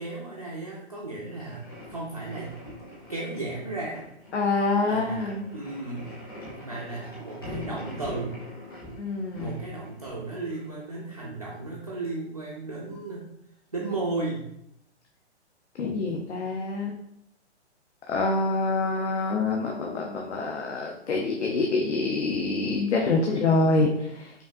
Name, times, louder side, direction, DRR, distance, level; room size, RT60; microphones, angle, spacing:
voice 1, 0.0-2.6 3.1-4.1 4.8-6.1 6.5-8.4 9.4-13.3 13.7-14.5, right 2 dB, 35° right, -6 dB, 0.4 m, -34 dB
sound 1, 1.3-10.7, left 1 dB, 20° left, 0.7 m, -43 dB
voice 2, 4.3-5.4 9.0-9.6 15.8-16.9 18.1-24.3, left 3 dB, 80° left, 1 dB, 0.7 m, -26 dB
5.0 x 2.6 x 2.6 m, 0.77 s
hypercardioid pair, 180°, 35 cm